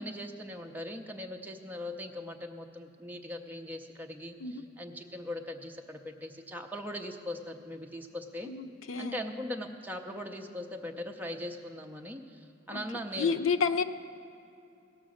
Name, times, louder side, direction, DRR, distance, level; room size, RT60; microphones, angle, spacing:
voice 1, 0.0-8.5 9.0-13.3, left 1 dB, 10° right, 3 dB, 0.7 m, -40 dB
voice 2, 8.5-9.2 12.7-12.8 13.2-13.8, left 5 dB, 85° left, 8 dB, 0.5 m, -30 dB
17.0 x 6.3 x 6.3 m, 2.7 s
head